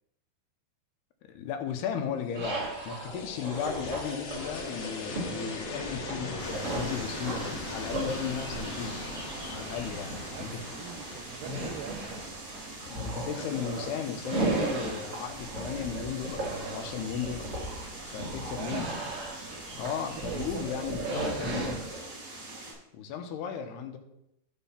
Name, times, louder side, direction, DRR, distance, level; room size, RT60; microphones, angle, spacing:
voice 1, 1.3-9.0 9.5-10.8 12.9-17.5 18.0-18.9 19.7-21.8 22.9-24.0, left 7 dB, 80° left, 6 dB, 3.0 m, -35 dB
sound 1, 2.3-13.3, left 2 dB, 50° left, 1.9 m, -40 dB
sound 2, 2.3-22.0, right 2 dB, 35° right, 3.0 m, -37 dB
sound 3, 6.4-22.7, right 2 dB, 55° right, 6.0 m, -43 dB
voice 2, 9.8-12.1 18.6-18.9 20.2-21.8, right 10 dB, 90° right, 6 dB, 2.0 m, -43 dB
14.0 x 4.7 x 5.7 m, 0.81 s
omnidirectional pair, 4.7 m